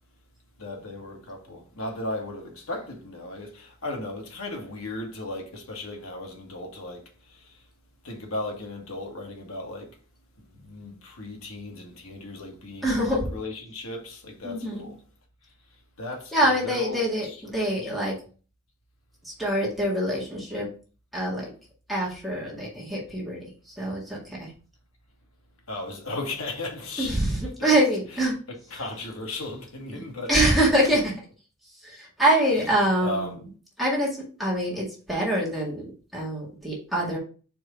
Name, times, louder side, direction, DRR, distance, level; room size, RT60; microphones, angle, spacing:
voice 1, 0.6-7.6 8.0-10.0 10.4-15.0 16.0-17.4 17.8-17.9 25.7-27.3 27.6-27.8 28.1-30.3 33.0-33.4, left 2 dB, 75° left, 1.9 m, -36 dB
voice 2, 12.8-13.3 14.4-14.9 16.3-18.1 19.2-20.7 21.1-21.5 21.9-23.4 23.7-24.5 27.0-28.3 30.3-31.1 31.8-33.4 33.8-34.1 34.4-37.2, right 1 dB, ahead, 1.9 m, -25 dB
4.8 x 4.4 x 5.2 m
head